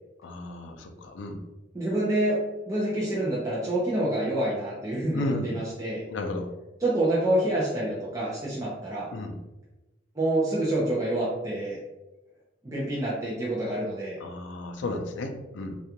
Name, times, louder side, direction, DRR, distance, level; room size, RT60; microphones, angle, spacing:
voice 1, 0.2-1.4 5.1-5.6 6.1-6.5 9.1-9.4 14.2-15.8, left 2 dB, 75° left, 5 dB, 0.4 m, -33 dB
voice 2, 1.7-2.4 2.7-6.0 6.8-9.1 10.2-11.8 12.6-14.2, right 1 dB, 15° right, -7 dB, 0.4 m, -27 dB
2.4 x 2.2 x 2.8 m, 1.0 s
head